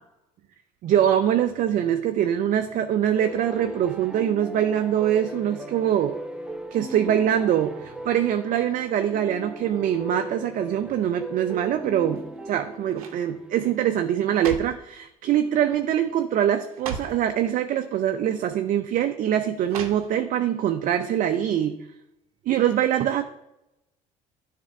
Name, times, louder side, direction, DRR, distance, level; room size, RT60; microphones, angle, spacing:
voice 1, 0.8-6.2 6.7-21.7 22.5-23.2, right 10 dB, 50° right, 7 dB, 0.5 m, -23 dB
sound 1, 3.1-13.8, right 1 dB, 5° right, 0.8 m, -39 dB
sound 2, 12.1-12.5 12.9-13.3 14.1-14.9 15.7-15.9 16.2-16.3 16.7-17.3 18.2-18.3 19.7-20.4 20.8-20.9, right 6 dB, 85° right, 0.7 m, -37 dB
9.8 x 3.4 x 4.5 m, 0.86 s
hypercardioid pair, 65°, 18 cm